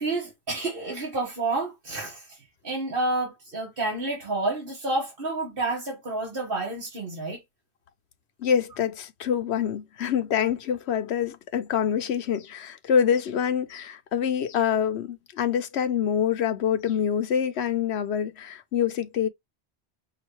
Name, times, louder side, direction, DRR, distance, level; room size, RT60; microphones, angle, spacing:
voice 1, 0.0-7.4, right 2 dB, 55° right, 1.8 m, -29 dB
voice 2, 8.4-19.3, left 8 dB, 80° left, 1.0 m, -26 dB
5.7 x 2.6 x 3.1 m
omnidirectional pair, 1.1 m